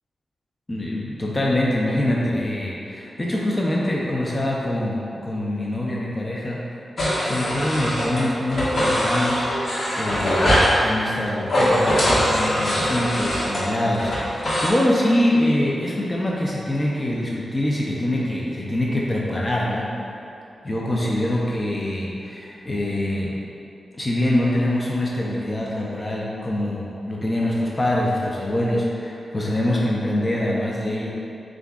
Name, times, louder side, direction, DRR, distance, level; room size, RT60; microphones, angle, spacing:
voice 1, 0.7-6.6 7.2-9.5 10.0-10.5 10.8-19.9 20.6-23.4 23.9-31.1, left 1 dB, 25° left, -4 dB, 0.5 m, -24 dB
sound 1, 7.0-8.2 8.5-10.8 11.4-14.7, equal, 65° left, 1.2 m, -22 dB
7.1 x 2.4 x 2.3 m, 2.8 s
wide cardioid pair, 90°, 0 cm